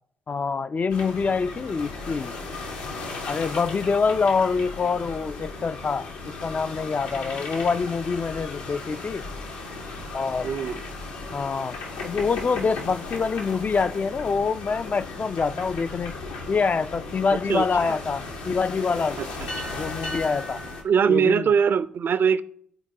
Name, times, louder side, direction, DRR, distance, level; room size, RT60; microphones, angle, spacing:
voice 1, 0.3-2.3 3.3-9.2 10.1-10.5 11.3-11.8 12.0-16.1 16.5-19.2 19.8-20.6 21.1-21.4, left 5 dB, 35° left, 0.4 m, -25 dB
sound 1, 0.9-20.8, left 3 dB, 80° left, 1.3 m, -36 dB
voice 2, 10.4-10.8 17.3-18.0 19.2-19.7 20.8-22.4, right 7 dB, 50° right, 0.5 m, -23 dB
13.0 x 4.5 x 2.8 m
figure-of-eight pair, 45°, 5 cm